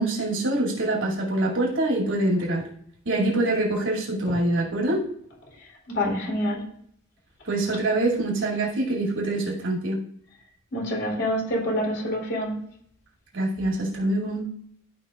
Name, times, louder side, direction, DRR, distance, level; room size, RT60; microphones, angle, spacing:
voice 1, 0.0-2.6 3.1-5.0 7.4-10.0 13.3-14.5, right 2 dB, 70° right, -3 dB, 2.6 m, -25 dB
voice 2, 5.9-6.6 10.7-12.6, left 1 dB, 55° left, -2 dB, 3.4 m, -26 dB
14.0 x 5.7 x 2.5 m, 0.66 s
head